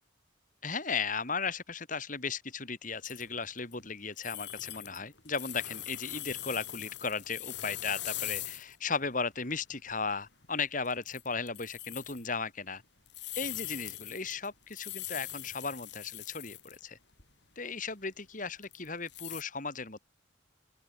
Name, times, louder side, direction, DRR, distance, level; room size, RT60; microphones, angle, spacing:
voice 1, 0.6-12.8 13.3-17.0 17.6-20.0, left 4 dB, 45° left, 3.3 m, -36 dB
sound 1, 3.0-3.8 4.2-8.7 9.0-9.1 9.7-9.9 10.2-10.5 10.8-12.3 13.1-16.8 17.1-17.2 18.6-19.4, left 14 dB, 70° left, 7.9 m, -41 dB
open air
head